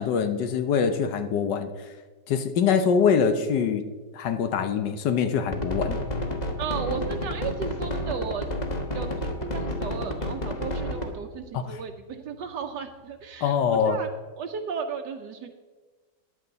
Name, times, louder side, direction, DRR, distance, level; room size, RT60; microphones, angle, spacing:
voice 1, 0.0-1.7 2.3-3.8 4.1-6.0 11.5-11.8 13.4-14.0, left 6 dB, 80° left, 9 dB, 1.4 m, -24 dB
sound 1, 5.4-13.9, left 2 dB, 45° left, 3.3 m, -43 dB
sound 2, 5.5-11.1, left 1 dB, 25° left, 1.2 m, -30 dB
voice 2, 6.6-8.6 8.9-15.5, right 6 dB, 75° right, 5 dB, 1.3 m, -35 dB
14.0 x 10.0 x 4.0 m, 1.3 s
omnidirectional pair, 1.9 m